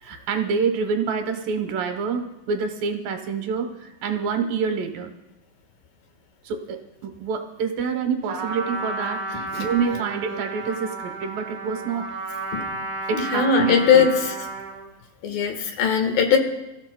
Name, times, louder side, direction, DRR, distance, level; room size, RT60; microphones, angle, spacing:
voice 1, 0.0-5.1 6.4-12.1 13.1-14.1, right 5 dB, 75° right, 5 dB, 2.6 m, -27 dB
Trumpet, 8.3-14.9, right 2 dB, 40° right, 2.6 m, -32 dB
voice 2, 13.1-14.3 15.2-16.4, left 6 dB, 75° left, 4 dB, 3.2 m, -19 dB
27.5 x 14.5 x 2.2 m, 0.96 s
omnidirectional pair, 4.2 m